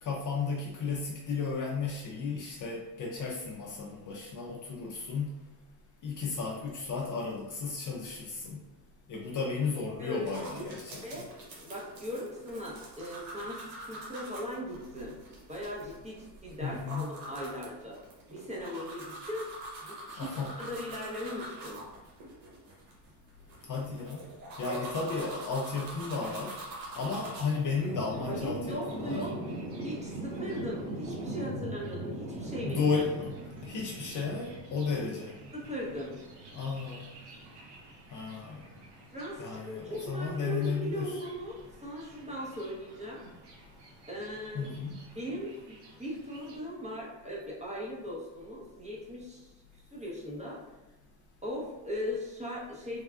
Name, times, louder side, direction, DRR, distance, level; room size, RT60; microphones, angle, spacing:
voice 1, 0.0-5.4 6.0-8.6 9.1-11.2 16.6-17.0 20.2-20.6 23.7-24.2 24.6-26.6 26.9-29.2 32.7-35.3 36.5-37.1 38.1-38.7 39.4-41.2 44.5-44.9, left 4 dB, 40° left, -2 dB, 0.5 m, -34 dB
voice 2, 10.0-10.7 11.0-11.3 11.6-15.2 15.5-18.0 18.3-19.5 19.8-21.8 24.7-24.8 28.2-29.4 29.8-32.8 34.9-35.0 35.5-36.1 39.1-43.2 44.1-44.6 45.2-50.6 51.4-53.0, equal, 15° right, -4 dB, 0.8 m, -39 dB
sound 1, 10.3-27.7, right 1 dB, 85° right, 1.0 m, -45 dB
Thunder, 27.0-46.6, right 1 dB, 55° right, 0.9 m, -43 dB
3.4 x 2.3 x 2.4 m, 1.1 s
supercardioid pair, 80°, 50 cm